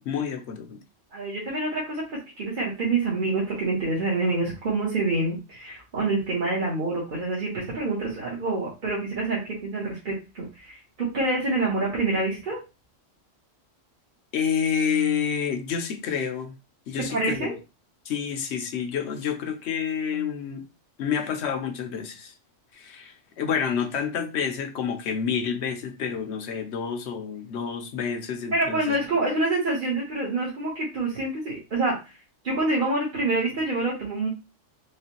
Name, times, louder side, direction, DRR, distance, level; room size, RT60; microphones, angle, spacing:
voice 1, 0.1-0.8 14.3-16.5 16.9-17.5 18.1-20.6 21.0-22.3 22.7-29.0, left 7 dB, 65° left, 7 dB, 0.9 m, -28 dB
voice 2, 1.1-2.0 2.4-12.6 17.0-17.5 28.5-32.0 32.4-34.3, right 2 dB, 40° right, -6 dB, 1.3 m, -26 dB
4.8 x 2.4 x 2.9 m, 0.28 s
omnidirectional pair, 1.3 m